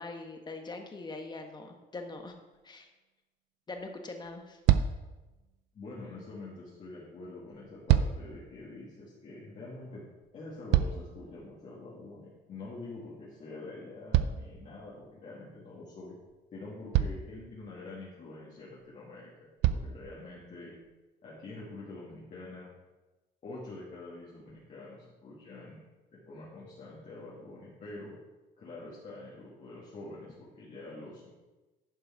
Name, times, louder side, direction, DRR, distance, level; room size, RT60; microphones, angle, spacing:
voice 1, 0.0-2.4 2.6-2.9 3.7-4.6, left 3 dB, 25° left, 5 dB, 1.3 m, -42 dB
sound 1, 2.2-2.4 3.8-3.9 4.2-4.4 4.7-5.2 7.5-8.4 10.2-11.3 14.1-15.1 16.3-16.4 16.9-17.4 18.8-18.9 19.6-20.0 20.8-20.9, right 11 dB, 85° right, 0.5 m, -27 dB
voice 2, 5.7-10.0 10.3-16.1 16.5-20.7 21.2-22.7 23.4-25.8 26.3-28.1 28.6-31.3, left 2 dB, 45° left, -7 dB, 2.5 m, -46 dB
11.0 x 5.3 x 4.7 m, 1.1 s
cardioid pair, 110°, 17 cm